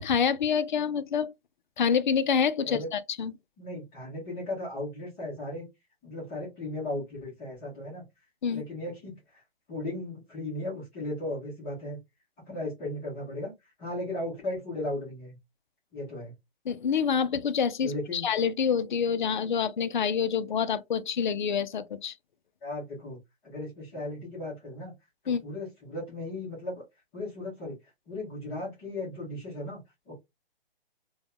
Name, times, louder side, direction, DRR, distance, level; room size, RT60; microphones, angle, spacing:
voice 1, 0.0-1.3 1.8-3.3 8.4-8.6 16.7-22.1 25.3-25.4, left 7 dB, 50° left, 0.4 m, -27 dB
voice 2, 3.6-5.7 6.0-8.0 8.5-9.4 9.7-12.0 12.5-13.5 13.8-15.4 15.9-16.3 17.8-18.3 22.6-23.2 23.4-24.9 25.2-26.8 27.1-27.8 28.1-29.8 30.1-30.2, left 1 dB, 15° left, 0.9 m, -36 dB
3.4 x 2.2 x 2.2 m
hypercardioid pair, 155°, 30 cm